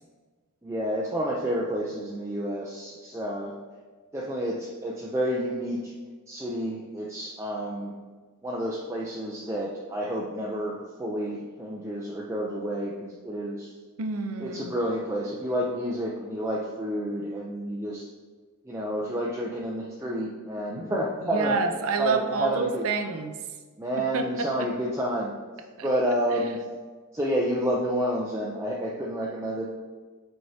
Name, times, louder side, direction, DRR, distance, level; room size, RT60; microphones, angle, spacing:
voice 1, 0.6-3.5 4.1-5.8 6.3-7.9 8.4-13.7 14.4-18.0 18.7-21.6 22.0-22.9 23.8-25.3 25.8-26.6 27.1-29.7, right 1 dB, 15° right, -4 dB, 0.5 m, -29 dB
voice 2, 14.0-14.7 21.2-23.3 24.0-24.7 25.8-25.9, right 4 dB, 70° right, 6 dB, 0.6 m, -28 dB
7.7 x 4.6 x 2.8 m, 1.4 s
head